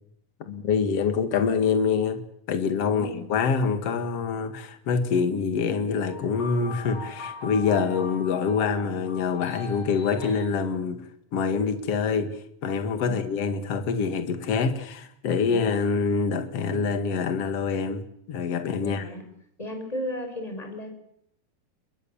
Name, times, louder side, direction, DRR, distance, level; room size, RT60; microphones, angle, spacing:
voice 1, 0.5-2.2 2.5-11.0 11.3-12.3 12.6-18.0 18.3-19.0, left 5 dB, 50° left, 8 dB, 2.8 m, -25 dB
voice 2, 2.9-3.2 13.0-13.4 15.5-15.6 18.8-19.2 19.6-20.9, left 1 dB, 10° left, 5 dB, 5.5 m, -35 dB
sound 1, 6.1-10.5, left 5 dB, 85° left, 6.9 m, -40 dB
29.0 x 22.5 x 7.2 m, 0.72 s
omnidirectional pair, 4.0 m